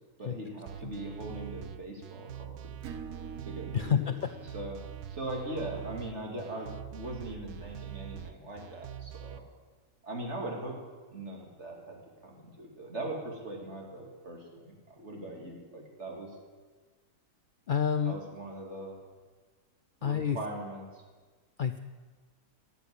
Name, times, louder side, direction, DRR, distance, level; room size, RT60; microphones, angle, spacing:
voice 1, 0.2-2.7 3.5-4.1 4.4-4.8 5.1-9.4 10.0-10.8 11.1-16.3 18.0-19.0 20.0-21.0, right 1 dB, 50° right, 0 dB, 2.7 m, -40 dB
sound 1, 0.7-9.4, right 10 dB, 90° right, 1.1 m, -44 dB
Acoustic guitar / Strum, 2.8-8.1, right 6 dB, 75° right, 1.3 m, -49 dB
voice 2, 3.7-4.3 17.7-18.2 20.0-20.4 21.6-21.8, left 8 dB, 90° left, 9 dB, 0.4 m, -28 dB
13.0 x 7.1 x 9.9 m, 1.4 s
omnidirectional pair, 1.5 m